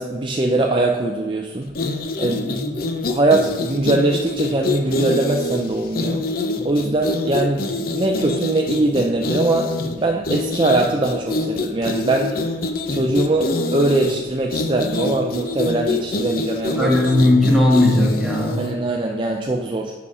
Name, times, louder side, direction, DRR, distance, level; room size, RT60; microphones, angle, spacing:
voice 1, 0.0-1.7 2.2-2.5 3.1-6.3 6.6-12.4 12.9-16.9 18.6-19.9, right 2 dB, 25° right, 1 dB, 0.5 m, -21 dB
sound 1, 1.7-18.8, left 2 dB, 50° left, 0.6 m, -25 dB
voice 2, 2.4-2.7 16.8-18.7, left 1 dB, ahead, -5 dB, 1.7 m, -17 dB
7.4 x 5.6 x 4.9 m, 1.3 s
head